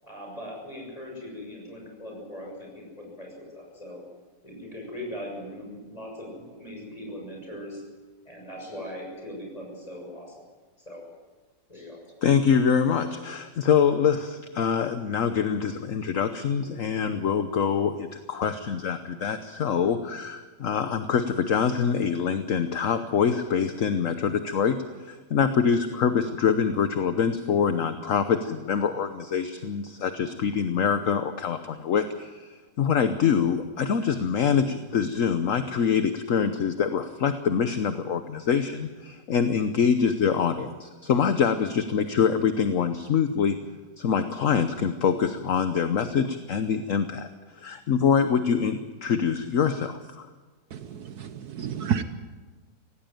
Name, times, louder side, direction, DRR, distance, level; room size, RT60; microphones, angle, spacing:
voice 1, 0.0-4.0 4.4-7.8 8.3-10.4 10.9-11.0 11.7-12.0, left 1 dB, 20° left, -1 dB, 7.0 m, -40 dB
voice 2, 12.2-24.8 25.0-43.6 44.0-47.3 47.6-50.3, left 7 dB, 55° left, 9 dB, 1.2 m, -25 dB
voice 3, 50.7-52.0, right 8 dB, 65° right, 10 dB, 1.4 m, -30 dB
17.5 x 17.0 x 9.1 m, 1.3 s
omnidirectional pair, 1.8 m